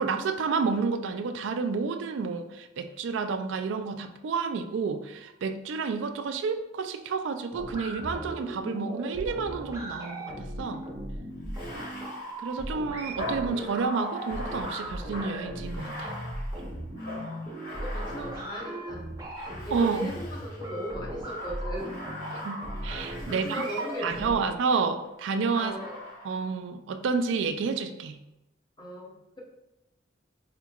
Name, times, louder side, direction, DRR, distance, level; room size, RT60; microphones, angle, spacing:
voice 1, 0.0-10.9 12.4-16.1 19.7-20.1 22.4-25.8 26.2-28.2, right 5 dB, 65° right, 8 dB, 0.3 m, -30 dB
sound 1, 7.5-24.3, right 1 dB, 15° right, 0.6 m, -37 dB
Bathtub (filling or washing), 11.4-18.8 19.3-20.6 21.2-24.4 25.5-26.5, left 1 dB, 60° left, 1.2 m, -41 dB
voice 2, 17.7-19.1 19.6-22.0 23.3-24.5 25.6-25.9 28.8-29.4, equal, 20° left, -2 dB, 0.7 m, -37 dB
4.3 x 2.9 x 2.3 m, 0.91 s
head